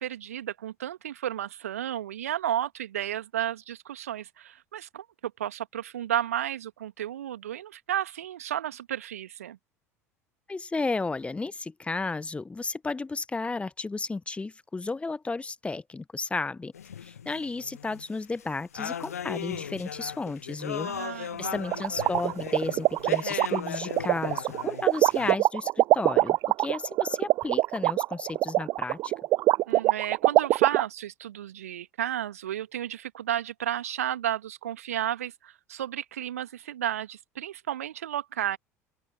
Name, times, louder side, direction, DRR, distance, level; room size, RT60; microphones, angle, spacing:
voice 1, 0.0-9.6 20.8-21.7 29.7-38.6, right 11 dB, 70° right, 2.0 m, -32 dB
voice 2, 10.5-16.7 17.0-29.1, left 3 dB, 15° left, 1.4 m, -33 dB
sound 1, 16.7-18.0 18.4-18.5 18.7-25.3, left 8 dB, 75° left, 0.7 m, -37 dB
sound 2, 21.7-30.8, right 17 dB, 45° right, 0.5 m, -23 dB
open air
figure-of-eight pair, 70°, 8 cm